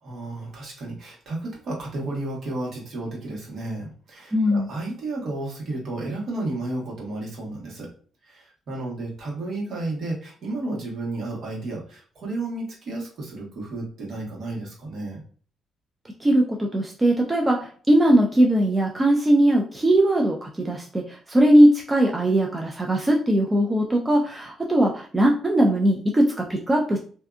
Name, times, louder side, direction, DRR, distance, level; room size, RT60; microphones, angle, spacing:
voice 1, 0.0-7.9 8.2-15.2, right 2 dB, 60° right, -3 dB, 1.2 m, -32 dB
voice 2, 4.3-4.7 16.2-27.0, right 1 dB, 20° right, 0 dB, 0.4 m, -20 dB
2.6 x 2.3 x 2.4 m, 0.44 s
cardioid pair, 90°, 0 cm